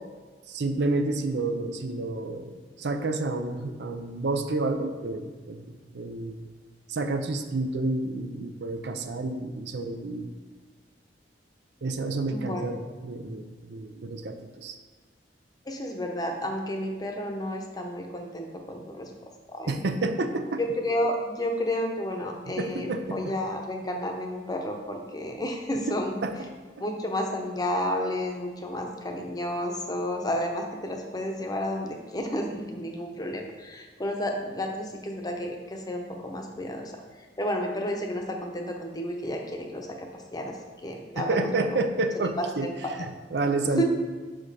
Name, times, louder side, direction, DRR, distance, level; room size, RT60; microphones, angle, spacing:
voice 1, 0.5-6.5 6.9-10.3 11.8-14.8 19.7-20.6 22.4-23.4 25.9-26.3 41.1-43.8, right 2 dB, 70° right, 6 dB, 0.6 m, -30 dB
voice 2, 12.3-12.6 15.7-19.1 19.5-19.7 20.6-26.1 26.8-36.9 37.4-39.9 40.3-40.5 40.8-41.8 42.6-43.0 43.8-43.9, left 1 dB, 20° left, 2 dB, 0.8 m, -31 dB
6.2 x 5.1 x 4.2 m, 1.4 s
head